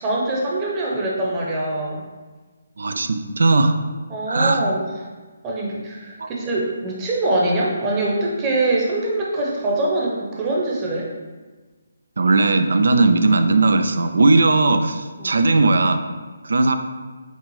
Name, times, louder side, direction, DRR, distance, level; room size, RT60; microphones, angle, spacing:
voice 1, 0.0-2.0 4.1-5.1 5.4-11.1 15.2-15.4, right 2 dB, 20° right, -4 dB, 0.8 m, -23 dB
voice 2, 2.8-3.8 4.3-4.6 6.2-6.3 12.2-16.0 16.4-16.8, right 3 dB, 70° right, 8 dB, 0.3 m, -17 dB
5.2 x 2.5 x 3.2 m, 1.3 s
figure-of-eight pair, 150°, 0 cm